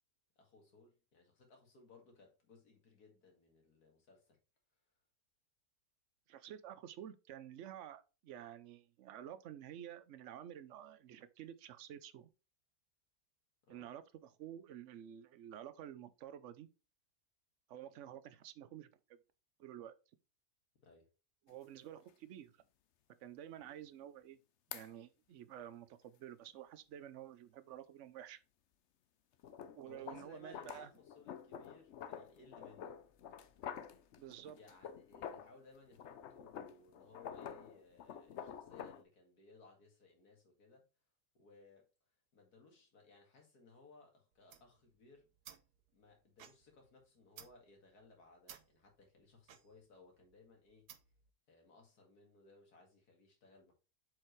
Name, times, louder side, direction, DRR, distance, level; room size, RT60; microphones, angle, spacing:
voice 1, 0.4-4.4 13.6-13.9 20.8-21.1 23.6-23.8 29.9-33.0 34.5-40.8 41.3-41.9 42.3-45.3 45.9-50.9 51.5-53.7, left 3 dB, 80° left, 2.5 m, -62 dB
voice 2, 6.3-12.3 13.7-16.7 17.7-19.2 19.6-19.9 21.5-22.5 23.2-24.4 24.7-28.4 29.7-30.9 34.2-34.6, right 10 dB, 60° right, 0.8 m, -51 dB
sound 1, 21.5-21.6 22.1-22.2 24.7-24.9 29.4-35.6 35.9-39.0, left 8 dB, 60° left, 0.8 m, -49 dB
sound 2, 44.3-51.3, right 10 dB, 85° right, 1.3 m, -60 dB
7.3 x 4.9 x 3.2 m
omnidirectional pair, 1.6 m